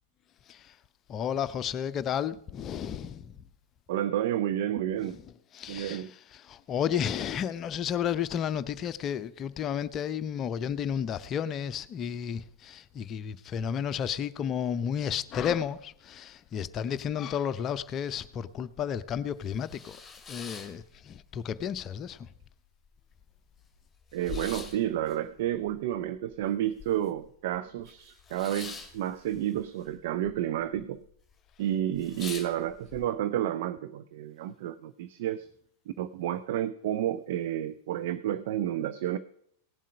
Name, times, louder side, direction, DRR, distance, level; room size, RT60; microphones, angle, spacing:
voice 1, 1.1-3.4 5.1-5.2 5.5-6.1 6.3-20.0 20.3-22.3, left 8 dB, 30° left, 0.6 m, -32 dB
voice 2, 3.9-5.2 5.7-6.1 24.1-31.0 31.6-35.5 35.9-39.2, right 11 dB, 55° right, 0.5 m, -31 dB
sound 1, 18.7-18.8 19.2-21.4 21.8-22.5 22.8-22.9 23.1-27.3 27.5-30.3 30.6-31.1 31.5-31.6 31.9-33.0, left 6 dB, 15° left, 2.2 m, -44 dB
17.5 x 7.4 x 5.4 m
figure-of-eight pair, 90°, 0 cm